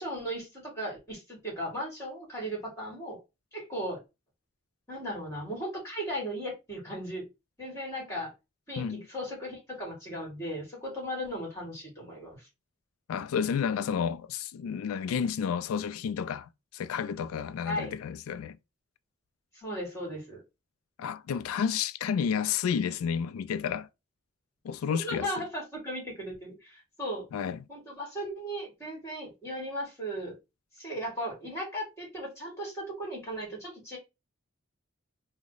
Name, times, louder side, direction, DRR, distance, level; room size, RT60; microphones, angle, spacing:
voice 1, 0.0-3.2 3.5-4.0 4.9-7.3 7.6-8.3 8.7-12.4 17.6-17.9 19.5-20.4 24.9-27.3 27.7-30.4 30.8-34.0, equal, 15° left, 1.6 m, -36 dB
voice 2, 8.8-9.1 13.1-18.6 21.0-23.9 24.6-25.3 27.3-27.7, left 7 dB, 90° left, 0.3 m, -31 dB
3.0 x 2.0 x 3.8 m
head